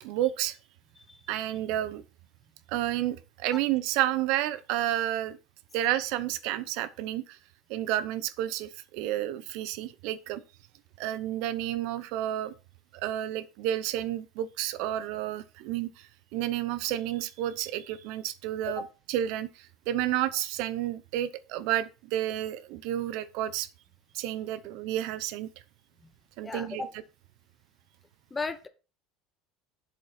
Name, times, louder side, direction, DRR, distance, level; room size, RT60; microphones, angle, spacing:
voice 1, 0.0-0.6 1.3-2.0 2.7-5.4 5.7-7.4 7.7-10.4 11.0-12.5 12.9-23.7 24.1-25.5 26.4-26.9, right 13 dB, 65° right, 0.8 m, -31 dB
voice 2, 26.4-26.9 28.3-28.7, left 3 dB, 15° left, 1.0 m, -35 dB
7.8 x 7.6 x 4.2 m
cardioid pair, 140°, 0 cm